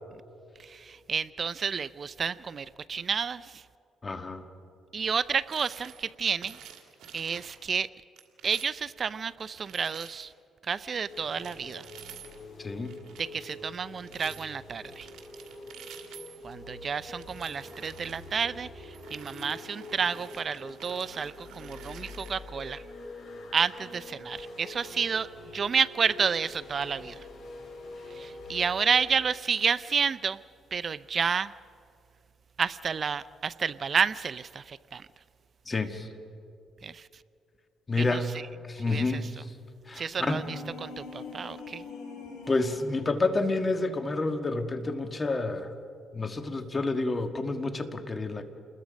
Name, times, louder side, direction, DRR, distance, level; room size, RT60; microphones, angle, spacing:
voice 1, 0.6-3.6 4.9-6.6 7.1-7.9 8.4-10.3 10.6-11.9 13.2-15.1 16.4-22.9 23.5-27.3 28.1-30.4 30.7-31.5 32.6-35.1 36.8-37.2 38.0-38.5 38.7-39.3 39.9-41.8, right 6 dB, 45° right, 17 dB, 0.4 m, -30 dB
voice 2, 4.0-4.4 12.6-12.9 35.7-36.1 37.9-38.3 38.7-39.3 39.9-40.4 42.5-45.7 46.1-48.5, left 3 dB, 30° left, 7 dB, 1.7 m, -29 dB
sound 1, 5.5-6.1 6.4-7.6 8.2-8.9 9.4-10.3 11.1-12.4 12.8-14.5 14.8-16.5 17.1-18.4 18.9-22.6, right 8 dB, 75° right, 2.2 m, -50 dB
sound 2, 11.1-28.9, left 2 dB, 55° left, 7.1 m, -45 dB
sound 3, 40.1-43.1, left 4 dB, 90° left, 5.4 m, -43 dB
28.5 x 21.0 x 5.2 m, 2.5 s
cardioid pair, 90°, 0 cm